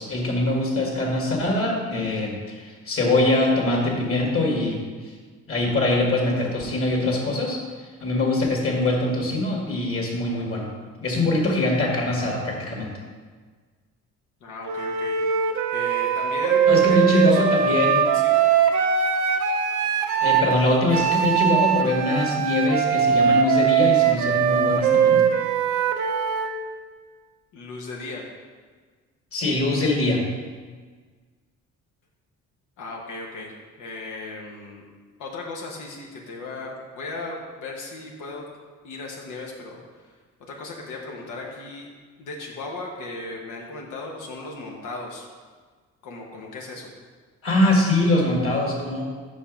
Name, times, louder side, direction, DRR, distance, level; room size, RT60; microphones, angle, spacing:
voice 1, 0.0-5.1 5.5-10.7 11.0-12.9 16.7-18.1 20.2-25.3 29.3-30.3 47.4-49.0, left 2 dB, 45° left, -1 dB, 1.9 m, -23 dB
voice 2, 14.4-15.2 15.7-17.4 18.1-18.4 27.5-28.3 32.8-34.8 35.2-38.5 38.8-41.9 42.2-45.3 46.0-46.9, left 2 dB, 90° left, -1 dB, 1.1 m, -36 dB
Wind instrument woodwind instrument, 14.7-20.5 20.9-26.5, right 7 dB, 70° right, 0.7 m, -21 dB
5.8 x 5.3 x 5.1 m, 1.5 s
cardioid pair, 90°, 30 cm